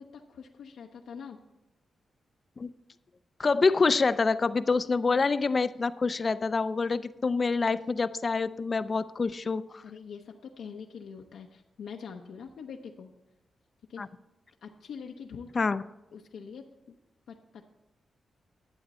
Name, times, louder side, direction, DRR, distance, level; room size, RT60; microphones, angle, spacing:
voice 1, 0.0-1.4 9.8-13.1 13.9-14.0 14.6-15.6 16.1-16.9 17.3-17.6, left 6 dB, 90° left, 2 dB, 0.7 m, -44 dB
voice 2, 3.4-9.8 14.0-14.1 15.6-15.8, left 4 dB, 40° left, 13 dB, 0.3 m, -26 dB
11.5 x 7.9 x 4.2 m, 0.95 s
cardioid pair, 100°, 0 cm